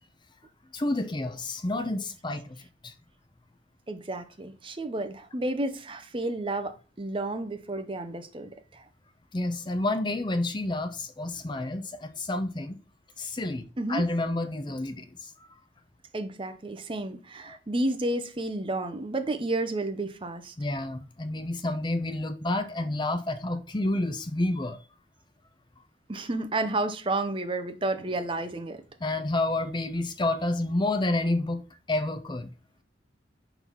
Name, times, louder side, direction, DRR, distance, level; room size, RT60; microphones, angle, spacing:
voice 1, 0.7-2.9 9.3-12.8 13.2-13.6 13.9-15.3 20.6-24.8 29.0-32.5, left 2 dB, 25° left, 0.5 m, -29 dB
voice 2, 3.9-8.9 13.8-14.1 16.1-20.5 26.1-28.8, right 2 dB, 25° right, 0.6 m, -31 dB
4.6 x 3.9 x 5.4 m
head